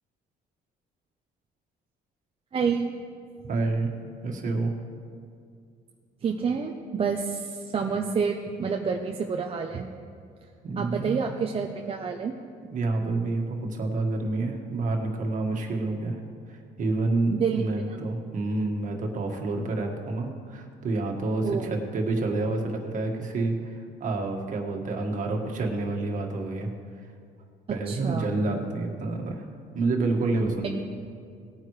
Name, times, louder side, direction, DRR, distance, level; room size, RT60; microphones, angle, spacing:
voice 1, 2.5-2.9 6.2-9.9 10.8-12.3 17.3-18.0 21.4-21.8 27.9-28.3, right 5 dB, 35° right, 2 dB, 0.7 m, -28 dB
voice 2, 3.5-3.9 4.2-4.7 10.6-11.2 12.7-16.2 16.5-26.7 27.7-29.4 29.7-30.8, right 2 dB, 50° right, 2 dB, 1.7 m, -28 dB
18.5 x 9.3 x 3.2 m, 2.3 s
cardioid pair, 110°, 17 cm